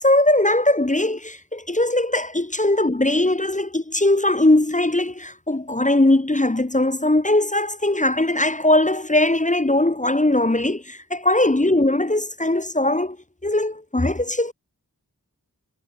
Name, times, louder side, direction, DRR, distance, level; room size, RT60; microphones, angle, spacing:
voice 1, 0.0-13.2 13.4-14.5, left 1 dB, 20° left, 1.1 m, -20 dB
wide cardioid pair, 55°, 37 cm